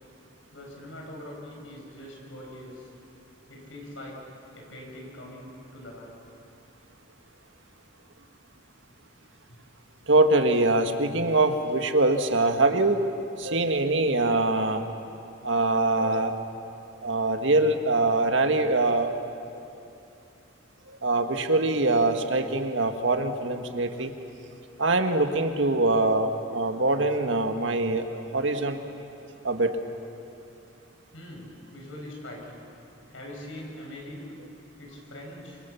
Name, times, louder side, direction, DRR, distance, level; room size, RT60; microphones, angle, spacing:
voice 1, 0.5-2.9 3.5-4.2 4.5-6.2 31.1-32.6 33.1-34.2 34.8-35.6, left 1 dB, 90° left, -1 dB, 7.2 m, -42 dB
voice 2, 10.1-13.0 13.4-14.9 15.4-16.4 17.0-19.2 20.9-24.1 24.8-28.0 28.3-28.8 29.4-29.8, right 2 dB, 75° right, 6 dB, 1.8 m, -23 dB
28.5 x 26.0 x 7.1 m, 2.7 s
head